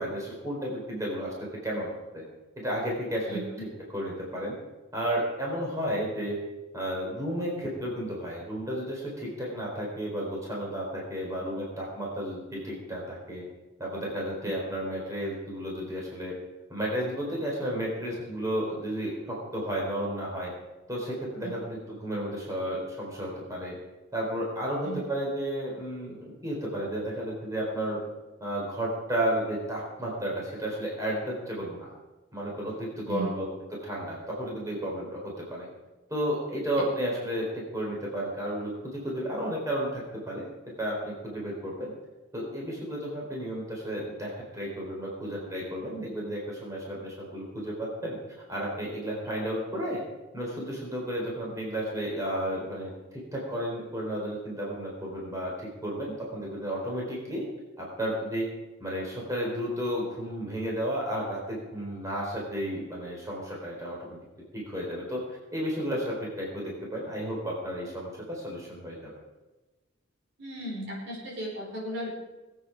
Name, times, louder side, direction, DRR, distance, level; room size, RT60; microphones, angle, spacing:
voice 1, 0.0-1.3 1.6-2.2 2.6-3.7 3.9-4.5 4.9-6.4 6.7-13.4 13.8-16.3 16.7-20.5 20.9-23.8 24.1-28.0 28.4-31.9 32.3-35.7 36.1-40.5 40.8-41.9 42.3-48.2 48.5-50.0 50.3-57.4 57.8-58.5 58.8-64.2 64.5-65.2 65.5-69.1, equal, 15° right, -3 dB, 3.8 m, -32 dB
voice 2, 3.2-3.6 21.4-21.5 24.8-25.0 33.0-33.3 70.4-72.1, right 1 dB, 65° right, -3 dB, 4.9 m, -36 dB
20.5 x 8.6 x 5.1 m, 1.1 s
head